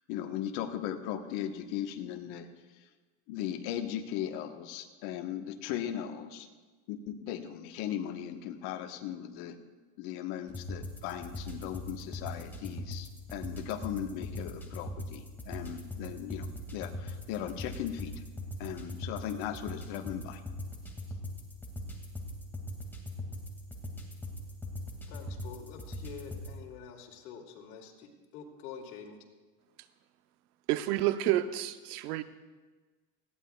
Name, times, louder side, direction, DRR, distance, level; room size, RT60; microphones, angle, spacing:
voice 1, 0.1-2.5 3.3-6.5 6.9-9.6 10.0-18.1 18.6-20.4, left 10 dB, 60° left, 6 dB, 1.3 m, -38 dB
sound 1, 10.5-26.5, left 1 dB, 5° left, 2.2 m, -41 dB
voice 2, 25.1-29.2, left 7 dB, 85° left, 1 dB, 2.6 m, -47 dB
voice 3, 30.7-32.2, right 14 dB, 85° right, 12 dB, 0.8 m, -29 dB
19.0 x 15.5 x 2.3 m, 1.3 s
supercardioid pair, 130°, 44 cm